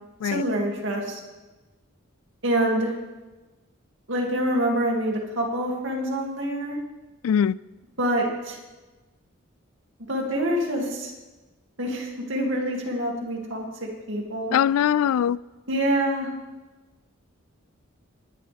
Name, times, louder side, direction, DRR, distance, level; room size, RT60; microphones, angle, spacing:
voice 1, 0.2-1.2 2.4-2.9 4.1-6.8 8.0-8.6 10.1-11.1 11.8-14.5 15.7-16.3, right 1 dB, 60° right, -1 dB, 2.6 m, -26 dB
voice 2, 7.2-7.6 14.5-15.4, left 9 dB, 80° left, 18 dB, 0.3 m, -21 dB
19.5 x 11.0 x 3.5 m, 1.2 s
head